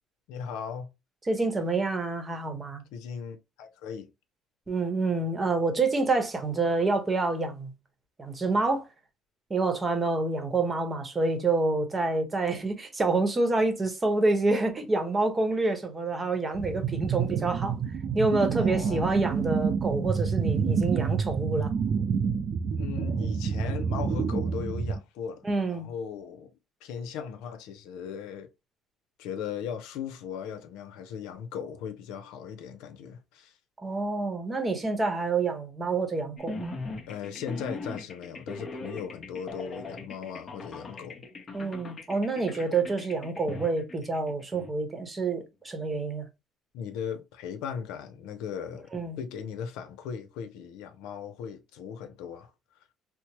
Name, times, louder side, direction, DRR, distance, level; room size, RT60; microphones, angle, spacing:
voice 1, 0.3-0.9 2.9-4.1 18.6-19.1 22.8-26.5 26.8-28.5 29.2-33.5 37.1-41.3 42.5-42.6 46.7-48.9 49.2-52.5, left 7 dB, 85° left, 0.6 m, -38 dB
voice 2, 1.3-2.8 4.7-7.7 8.2-8.9 9.5-17.8 18.1-21.7 25.4-25.9 33.8-36.8 41.5-46.2 48.9-49.2, right 3 dB, 20° right, 0.9 m, -27 dB
sound 1, 16.5-25.0, right 6 dB, 50° right, 0.3 m, -28 dB
sound 2, 36.4-44.7, left 3 dB, 30° left, 0.9 m, -40 dB
4.3 x 2.0 x 2.9 m
cardioid pair, 115°, 0 cm